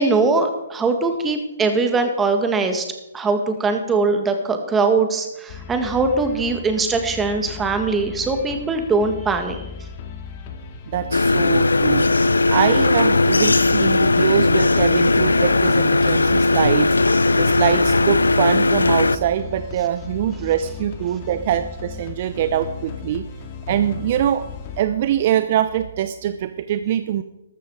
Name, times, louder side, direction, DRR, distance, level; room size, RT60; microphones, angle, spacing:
voice 1, 0.0-2.9 3.1-9.6, right 3 dB, 15° right, 6 dB, 1.9 m, -21 dB
sound 1, 5.5-24.8, left 6 dB, 40° left, 2.1 m, -36 dB
voice 2, 10.9-12.1 12.5-16.9 17.3-23.2 23.7-24.4 24.8-27.2, right 11 dB, 45° right, 11 dB, 0.7 m, -23 dB
sound 2, 11.1-19.2, left 2 dB, 85° left, 0.5 m, -17 dB
14.0 x 12.5 x 4.8 m, 0.93 s
figure-of-eight pair, 130°, 0 cm